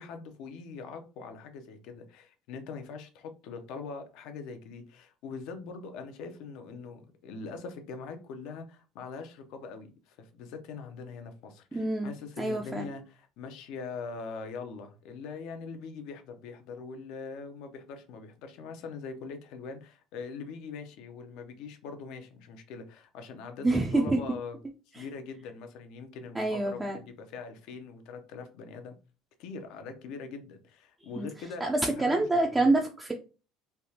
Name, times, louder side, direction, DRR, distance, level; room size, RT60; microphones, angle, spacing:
voice 1, 0.0-24.6 24.9-29.0 29.4-32.1 32.6-32.7, left 5 dB, 70° left, 0.6 m, -42 dB
voice 2, 11.7-12.9 23.6-24.2 24.9-25.0 26.3-27.0 31.2-31.3 31.6-33.1, right 2 dB, 15° right, 0.4 m, -27 dB
3.3 x 2.3 x 2.8 m
cardioid pair, 115°, 0 cm